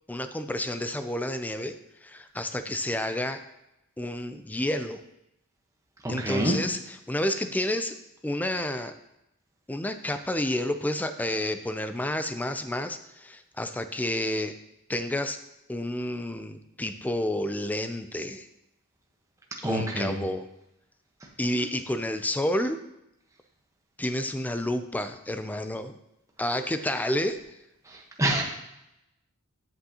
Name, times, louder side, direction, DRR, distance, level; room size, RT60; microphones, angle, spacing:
voice 1, 0.1-1.7 2.0-3.4 4.0-5.0 6.1-8.0 8.2-8.9 9.7-14.5 14.9-15.4 15.7-18.5 19.6-20.5 21.4-22.8 24.0-25.9 26.4-27.4, left 1 dB, 5° left, 9 dB, 0.4 m, -30 dB
voice 2, 6.0-6.6 19.6-20.1 27.9-28.4, right 1 dB, 15° right, 0 dB, 1.1 m, -27 dB
8.0 x 7.9 x 2.9 m, 0.87 s
head